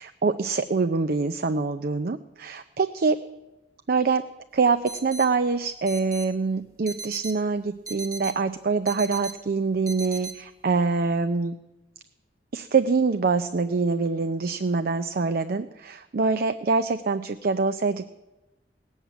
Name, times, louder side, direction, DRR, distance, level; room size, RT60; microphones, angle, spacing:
voice 1, 0.0-3.2 3.9-4.3 4.5-11.6 12.5-18.1, right 4 dB, 55° right, 9 dB, 0.5 m, -25 dB
sound 1, 4.9-5.3 5.9-6.3 6.9-7.3 7.9-8.3 8.9-9.3 9.9-10.3, right 3 dB, 20° right, 1.4 m, -37 dB
18.0 x 7.3 x 9.2 m, 1.0 s
head